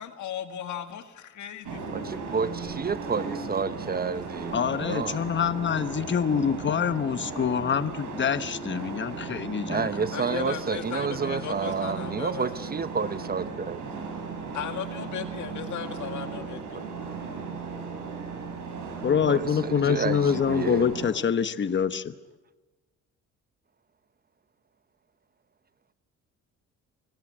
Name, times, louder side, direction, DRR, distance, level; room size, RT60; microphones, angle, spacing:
voice 1, 0.0-2.2 10.1-12.5 14.5-16.9, left 9 dB, 75° left, 2.1 m, -36 dB
sound 1, 1.6-21.1, right 4 dB, 80° right, 5.0 m, -36 dB
voice 2, 1.9-5.2 9.7-13.8 16.7-16.8 19.3-20.9, right 5 dB, 30° right, 0.8 m, -30 dB
voice 3, 4.5-9.9 19.0-22.1, left 7 dB, 40° left, 1.1 m, -26 dB
24.5 x 16.5 x 8.9 m
cardioid pair, 90°, 30 cm